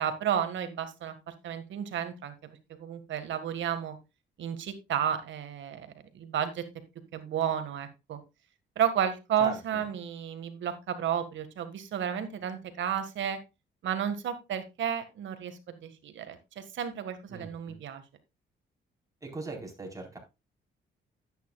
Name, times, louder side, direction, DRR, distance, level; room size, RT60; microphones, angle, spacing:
voice 1, 0.0-2.3 2.7-4.0 4.4-6.7 7.1-8.2 8.8-13.4 13.8-18.0, right 9 dB, 70° right, 10 dB, 1.8 m, -32 dB
voice 2, 17.3-17.8 19.2-20.2, right 3 dB, 15° right, 0 dB, 4.2 m, -40 dB
11.5 x 9.2 x 2.4 m, 0.25 s
cardioid pair, 90°, 20 cm